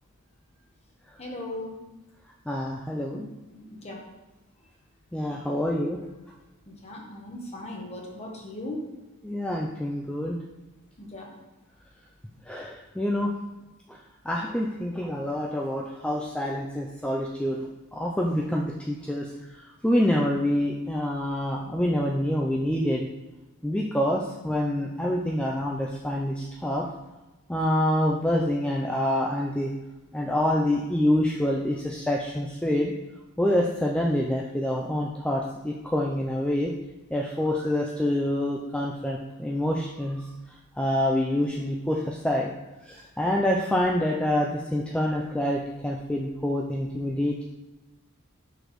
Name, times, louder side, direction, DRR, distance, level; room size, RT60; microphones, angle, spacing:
voice 1, 1.2-1.7 3.1-4.0 6.8-8.8 11.0-11.3, left 1 dB, 30° left, 0 dB, 1.1 m, -38 dB
voice 2, 2.5-3.2 5.1-6.0 9.2-10.4 12.5-13.3 13.9-14.0 14.3-17.6 17.9-19.3 19.8-23.1 23.6-26.8 27.5-29.7 30.1-32.9 33.4-36.7 37.1-40.2 40.8-42.5 42.8-47.4, left 1 dB, 5° left, -2 dB, 0.4 m, -26 dB
6.2 x 5.0 x 3.0 m, 1.1 s
head